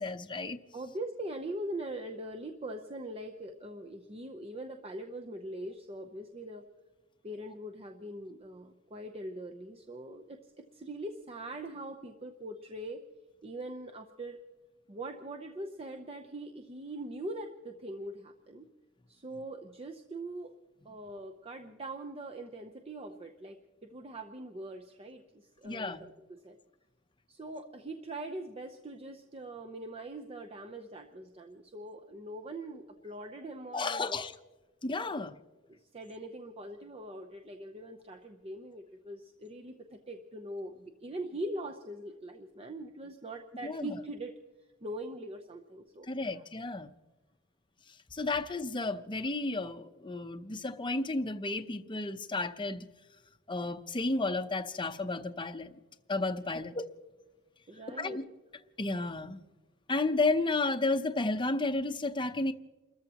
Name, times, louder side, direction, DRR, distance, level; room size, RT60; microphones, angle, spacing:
voice 1, 0.0-0.6 25.6-26.1 33.7-34.3 34.8-35.3 43.6-43.9 46.1-46.9 48.1-52.9 53.5-55.7 56.1-56.8 58.0-58.2 58.8-59.4 59.9-62.5, left 3 dB, 25° left, 0.7 m, -32 dB
voice 2, 0.7-6.6 7.2-13.0 13.4-14.4 14.9-18.7 19.1-20.5 20.8-26.1 26.4-26.6 27.3-34.2 35.0-35.3 35.7-44.3 44.8-46.4 57.7-58.2, right 1 dB, 30° right, 0.7 m, -42 dB
29.5 x 14.0 x 2.9 m
head